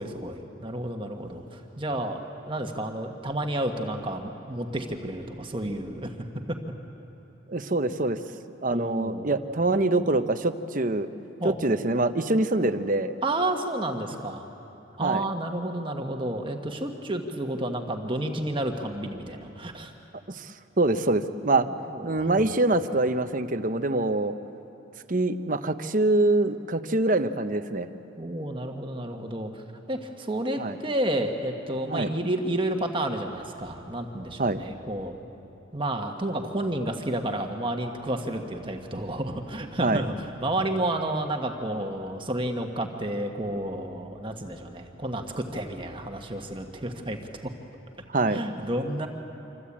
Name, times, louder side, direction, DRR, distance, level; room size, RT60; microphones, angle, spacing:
voice 1, 0.0-6.1 8.7-9.3 11.4-11.6 13.2-14.5 15.0-19.9 21.9-22.3 28.2-35.2 35.7-47.2 48.3-49.1, right 1 dB, 25° right, 4 dB, 1.5 m, -31 dB
voice 2, 7.5-8.2 8.6-11.1 11.4-13.1 15.0-15.2 20.3-21.7 22.0-24.3 25.1-27.9 30.6-30.7 31.9-32.1 34.4-34.6 39.8-40.0 48.1-48.4, right 2 dB, 40° right, 10 dB, 1.0 m, -25 dB
27.0 x 24.5 x 8.7 m, 3.0 s
head